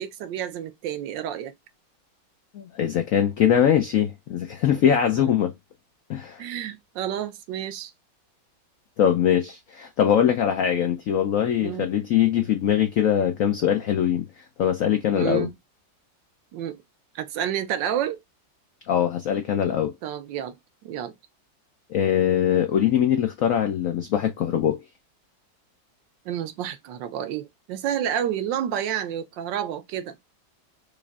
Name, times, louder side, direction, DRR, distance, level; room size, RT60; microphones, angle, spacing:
voice 1, 0.0-1.5 5.2-5.3 6.4-7.9 11.6-11.9 15.1-15.5 16.5-16.8 17.1-18.2 20.0-20.5 20.8-21.1 26.3-30.2, right 10 dB, 75° right, 1.3 m, -30 dB
voice 2, 2.5-5.5 6.1-6.4 9.0-14.2 14.6-15.5 18.9-19.9 21.9-24.8, left 9 dB, 90° left, 0.7 m, -22 dB
5.1 x 2.6 x 2.3 m
omnidirectional pair, 2.1 m